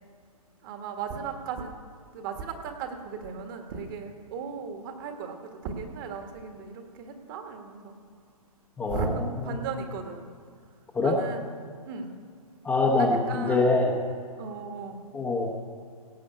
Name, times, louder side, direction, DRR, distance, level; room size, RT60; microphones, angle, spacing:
voice 1, 0.6-1.7 2.1-8.0 8.9-10.3 11.0-11.5 11.8-12.1 13.0-13.8 14.4-15.0, right 5 dB, 35° right, 5 dB, 1.6 m, -36 dB
voice 2, 8.8-9.1 10.9-11.2 12.6-14.0 15.1-15.6, left 2 dB, 10° left, -1 dB, 0.9 m, -24 dB
17.0 x 5.7 x 8.6 m, 2.1 s
hypercardioid pair, 145°, 19 cm